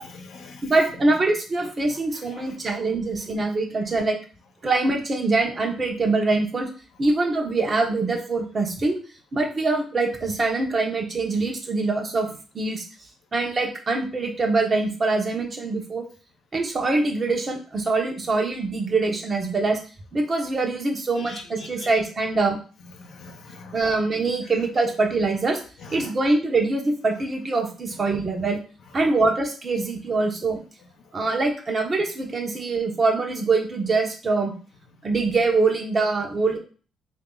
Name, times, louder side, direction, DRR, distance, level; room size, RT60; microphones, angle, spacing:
voice 1, 0.0-0.7 1.6-2.9 21.2-21.9 22.3-22.4 23.0-23.9 25.8-26.1, left 3 dB, 75° left, 3 dB, 0.9 m, -44 dB
voice 2, 0.6-4.2 4.6-6.7 7.0-9.0 9.3-12.3 12.5-12.9 13.3-16.1 16.5-19.8 20.1-22.6 23.7-25.6 25.9-28.6 28.9-30.6 31.1-34.5 35.0-36.6, right 3 dB, 35° right, 2 dB, 1.0 m, -24 dB
3.3 x 2.8 x 3.8 m, 0.38 s
cardioid pair, 90°, 0 cm